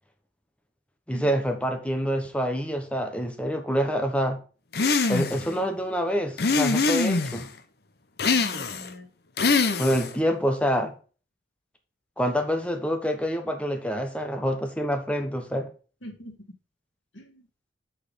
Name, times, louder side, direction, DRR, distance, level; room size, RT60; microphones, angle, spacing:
voice 1, 1.1-4.4 5.1-7.5 9.5-10.9 12.2-15.7, equal, 5° left, 1.0 m, -27 dB
sound 1, 4.7-5.5 6.4-7.4 8.2-8.9 9.4-10.2, left 4 dB, 55° left, 0.8 m, -23 dB
voice 2, 4.8-5.3 8.3-9.1 16.0-16.4 17.1-17.4, left 1 dB, 85° left, 2.3 m, -43 dB
8.1 x 4.8 x 5.3 m
head